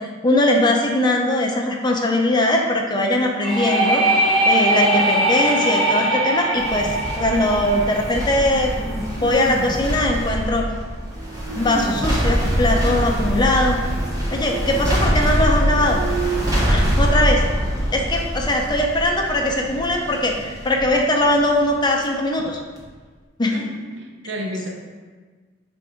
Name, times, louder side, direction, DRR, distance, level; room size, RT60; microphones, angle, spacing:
voice 1, 0.0-4.0 4.4-10.6 11.6-13.8 14.3-16.0 16.7-17.4 17.9-22.6 23.4-23.5, left 1 dB, 20° left, 1 dB, 0.5 m, -20 dB
sound 1, 3.4-9.1, right 1 dB, ahead, 1.8 m, -21 dB
sound 2, 6.5-22.0 22.4-22.5, equal, 20° right, 1.1 m, -23 dB
voice 2, 23.5-24.7, equal, 60° right, 1 dB, 0.8 m, -31 dB
7.2 x 2.6 x 4.9 m, 1.4 s
head